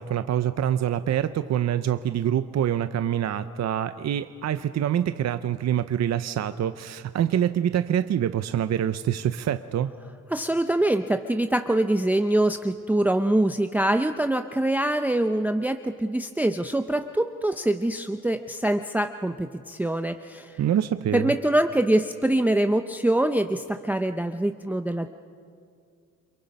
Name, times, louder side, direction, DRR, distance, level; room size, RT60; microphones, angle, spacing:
voice 1, 0.0-9.9 20.6-21.3, right 10 dB, 55° right, 11 dB, 0.7 m, -25 dB
voice 2, 10.3-20.6 21.1-25.1, right 1 dB, 5° right, 8 dB, 0.6 m, -24 dB
29.0 x 23.0 x 5.4 m, 2.3 s
cardioid pair, 115°, 32 cm